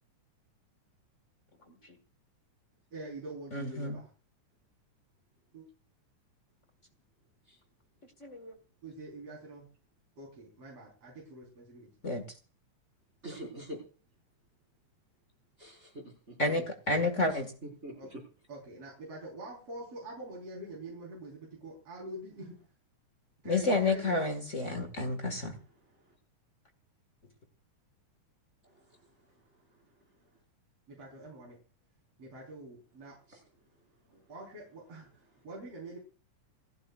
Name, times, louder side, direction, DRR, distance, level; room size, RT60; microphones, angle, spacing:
voice 1, 2.9-4.1 5.5-5.7 8.8-9.7 10.2-11.9 17.9-18.1 18.5-22.6 23.4-24.7 30.9-31.6 32.2-33.2 34.1-36.0, right 1 dB, 50° right, -3 dB, 5.6 m, -45 dB
voice 2, 3.5-4.0 8.2-8.5 12.0-12.2 16.4-17.5 23.5-25.6, left 2 dB, 30° left, 6 dB, 1.7 m, -30 dB
voice 3, 13.2-13.8 15.6-16.4 17.3-18.2 33.3-33.4, right 1 dB, 20° right, 0 dB, 5.9 m, -44 dB
28.5 x 12.0 x 2.5 m, 0.38 s
omnidirectional pair, 3.6 m